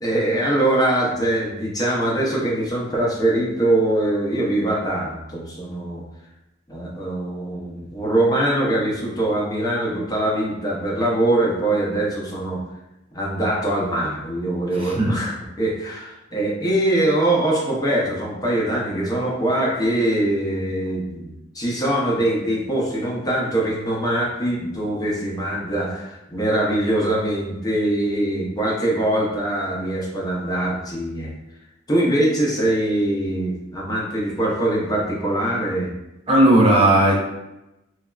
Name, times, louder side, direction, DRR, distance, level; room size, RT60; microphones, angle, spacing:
voice 1, 0.0-6.0 6.7-12.6 13.1-31.3 31.9-35.9, right 1 dB, 20° left, -4 dB, 0.6 m, -22 dB
voice 2, 14.8-15.2 36.3-37.1, right 1 dB, 30° right, -3 dB, 0.5 m, -15 dB
3.2 x 2.3 x 2.3 m, 0.93 s
head